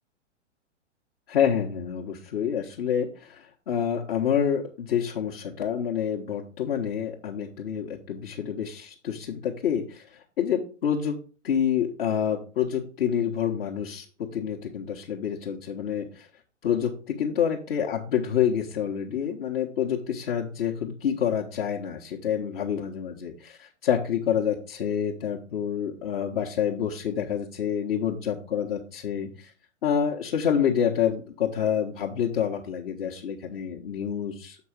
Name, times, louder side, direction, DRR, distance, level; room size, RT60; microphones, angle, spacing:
voice 1, 1.3-11.2 11.4-16.3 16.6-29.5 29.8-34.6, left 8 dB, 50° left, -2 dB, 1.3 m, -28 dB
7.1 x 5.3 x 4.9 m, 0.37 s
figure-of-eight pair, 115°, 36 cm